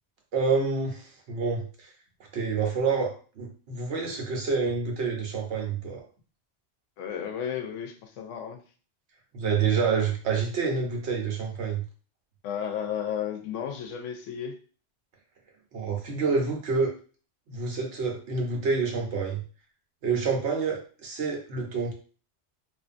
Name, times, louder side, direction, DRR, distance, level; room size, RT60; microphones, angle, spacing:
voice 1, 0.3-1.9 2.3-6.0 9.3-11.8 15.7-16.9 17.5-19.4 20.0-21.9, right 5 dB, 70° right, 1 dB, 1.0 m, -28 dB
voice 2, 7.0-8.6 12.4-14.6, left 8 dB, 90° left, 5 dB, 0.9 m, -33 dB
2.5 x 2.5 x 2.4 m, 0.38 s
omnidirectional pair, 1.2 m